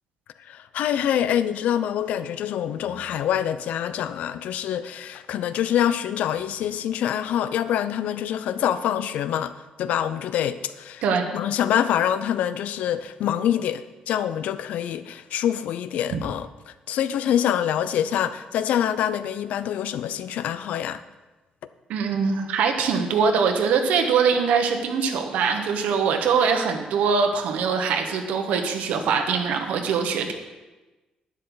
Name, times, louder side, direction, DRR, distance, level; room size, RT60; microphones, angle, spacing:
voice 1, 0.4-11.0 11.3-21.0, left 10 dB, 80° left, 13 dB, 0.6 m, -25 dB
voice 2, 21.9-30.3, right 6 dB, 90° right, 4 dB, 1.3 m, -22 dB
11.5 x 9.8 x 4.0 m, 1.2 s
cardioid pair, 150°, 2 cm